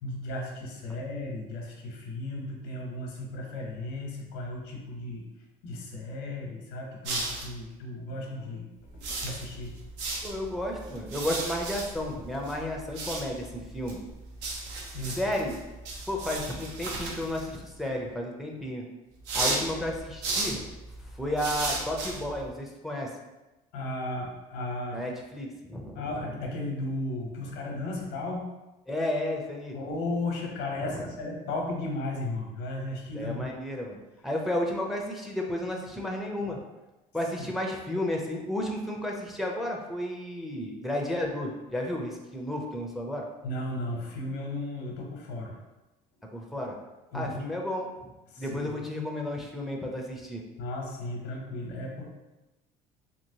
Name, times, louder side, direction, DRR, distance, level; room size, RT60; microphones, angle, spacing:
voice 1, 0.0-5.3 5.6-8.7 8.9-9.7 14.9-15.2 23.7-25.0 25.9-28.4 29.7-33.4 43.4-45.6 47.1-47.5 48.3-48.7 50.6-52.0, left 2 dB, 85° left, 0 dB, 0.8 m, -35 dB
sound 1, 7.1-7.7 8.9-17.8 19.2-22.5, right 2 dB, 80° right, 0.7 m, -35 dB
voice 2, 10.2-14.0 15.2-15.6 16.1-18.8 19.3-20.6 21.1-23.1 24.9-26.3 28.9-29.8 30.9-31.0 33.1-34.0 34.2-36.6 37.1-43.2 46.3-46.8 47.1-48.1 48.4-50.4, left 1 dB, ahead, 0 dB, 0.5 m, -32 dB
2.9 x 2.9 x 2.7 m, 1.0 s
cardioid pair, 105°, 18 cm